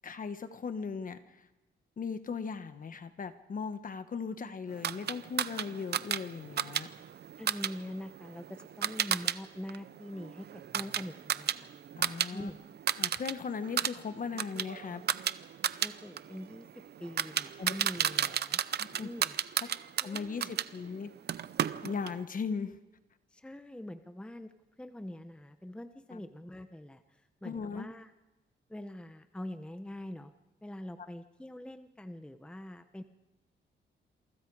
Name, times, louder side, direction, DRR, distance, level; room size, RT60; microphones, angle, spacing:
voice 1, 0.0-1.2 2.0-6.9 12.0-12.5 13.0-15.0 17.6-17.7 18.8-19.1 19.6-19.7 20.0-21.1 21.8-22.7 26.1-26.2 27.4-27.9, left 5 dB, 45° left, 10 dB, 1.4 m, -38 dB
sound 1, 4.8-9.4 9.7-12.3 12.6-13.3 13.6-20.7 21.3-22.2, right 9 dB, 55° right, 0.7 m, -33 dB
voice 2, 7.4-11.7 12.3-12.6 15.8-16.7 17.0-18.6 19.0-19.4 20.0-20.5 23.3-24.5 24.8-27.0 27.4-28.1 28.7-30.3 30.6-33.0, left 1 dB, 5° left, 9 dB, 0.8 m, -44 dB
27.5 x 24.0 x 4.9 m, 1.1 s
cardioid pair, 125°, 20 cm